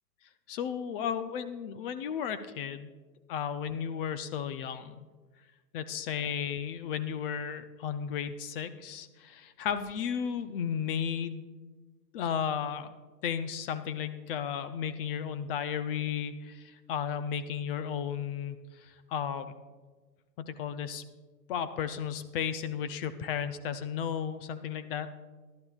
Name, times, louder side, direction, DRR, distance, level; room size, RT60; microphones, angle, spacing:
voice 1, 0.5-2.9 3.3-5.0 5.7-11.4 12.1-12.9 13.2-19.5 20.4-21.0 21.5-25.1, left 8 dB, 35° left, 11 dB, 0.6 m, -34 dB
20.5 x 11.5 x 2.4 m, 1.3 s
hypercardioid pair, 135°, 50 cm